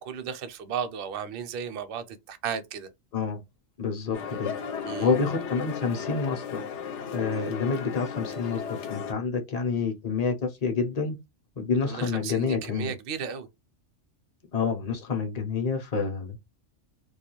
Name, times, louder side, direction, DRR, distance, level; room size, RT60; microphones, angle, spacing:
voice 1, 0.0-2.9 4.8-5.1 11.9-13.5, right 7 dB, 60° right, 0.6 m, -34 dB
voice 2, 3.8-4.5 5.0-6.6 7.1-11.2 11.6-12.9 14.5-16.4, left 5 dB, 40° left, 0.6 m, -28 dB
sound 1, 4.1-9.1, left 7 dB, 75° left, 0.9 m, -35 dB
2.3 x 2.2 x 2.9 m
omnidirectional pair, 1.2 m